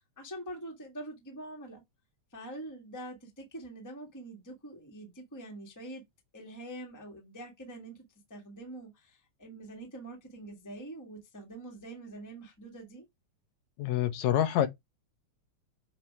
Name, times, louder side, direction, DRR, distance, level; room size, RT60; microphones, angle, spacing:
voice 1, 0.0-1.8 2.3-6.0 6.3-8.0 8.3-13.0, right 1 dB, 10° left, 1.1 m, -45 dB
voice 2, 13.8-14.7, left 11 dB, 75° left, 2.1 m, -26 dB
7.4 x 2.8 x 4.7 m
omnidirectional pair, 3.3 m